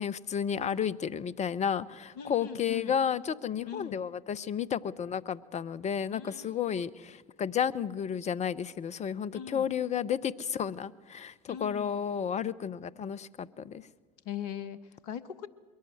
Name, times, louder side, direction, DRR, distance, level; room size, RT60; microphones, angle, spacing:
voice 1, 0.0-13.9, left 8 dB, 35° left, 17 dB, 1.0 m, -32 dB
voice 2, 2.2-2.9 3.7-4.0 6.1-6.9 9.3-9.7 11.5-12.0 14.2-15.5, left 9 dB, 70° left, 15 dB, 1.2 m, -41 dB
22.5 x 17.0 x 7.8 m, 1.3 s
hypercardioid pair, 70°, 20 cm